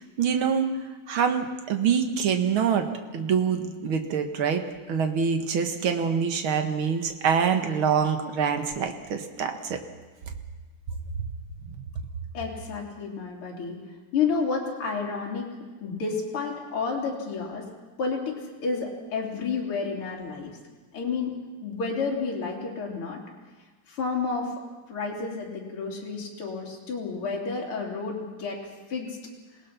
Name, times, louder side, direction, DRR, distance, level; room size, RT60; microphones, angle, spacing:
voice 1, 0.2-0.7 1.1-2.9 3.1-9.8 11.8-11.9, right 7 dB, 50° right, 6 dB, 2.1 m, -25 dB
voice 2, 12.3-13.8 14.1-15.5 15.8-17.7 18.0-20.5 20.9-21.3 21.6-23.2 23.9-24.5 24.9-28.6 28.9-29.2, left 5 dB, 45° left, -2 dB, 3.9 m, -30 dB
27.5 x 18.5 x 5.9 m, 1.3 s
omnidirectional pair, 3.4 m